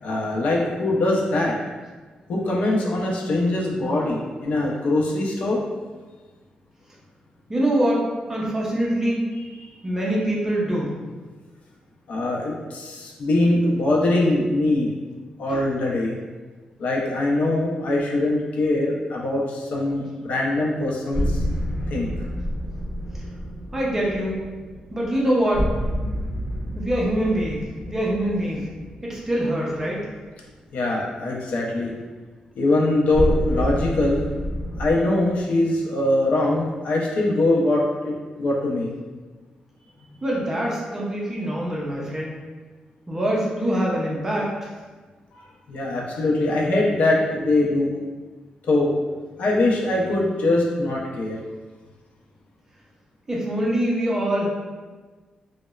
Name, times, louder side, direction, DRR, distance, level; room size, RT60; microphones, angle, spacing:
voice 1, 0.0-1.6 2.3-5.6 12.1-14.9 15.4-16.1 16.8-21.4 21.9-22.1 30.7-31.9 32.6-34.2 34.8-38.9 45.3-45.4 45.7-48.0 48.6-48.9 49.4-51.4, left 2 dB, 65° left, -3 dB, 0.5 m, -22 dB
voice 2, 7.5-8.0 8.3-9.2 9.8-10.9 15.5-15.6 23.7-24.4 24.9-25.6 26.8-28.7 29.0-30.0 40.2-42.3 43.1-44.7 53.3-54.5, right 1 dB, 20° right, -4 dB, 0.5 m, -24 dB
sound 1, 21.1-30.1 33.1-34.9, equal, 30° left, 1.0 m, -29 dB
2.9 x 2.0 x 2.3 m, 1.3 s
wide cardioid pair, 140°, 3 cm